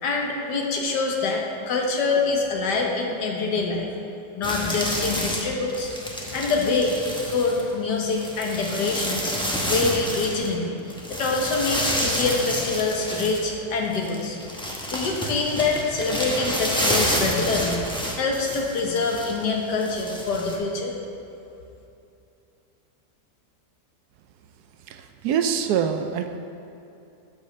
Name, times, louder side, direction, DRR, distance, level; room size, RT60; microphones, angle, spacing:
voice 1, 0.0-3.9 4.4-5.9 6.3-7.0 7.2-9.3 9.7-14.4 14.9-20.9, left 3 dB, 80° left, 0 dB, 1.7 m, -25 dB
sound 1, 4.4-10.6 10.9-20.6, equal, 5° left, 0.6 m, -29 dB
voice 2, 24.9-26.4, right 8 dB, 75° right, 8 dB, 1.1 m, -25 dB
9.1 x 5.2 x 6.6 m, 2.7 s
omnidirectional pair, 1.8 m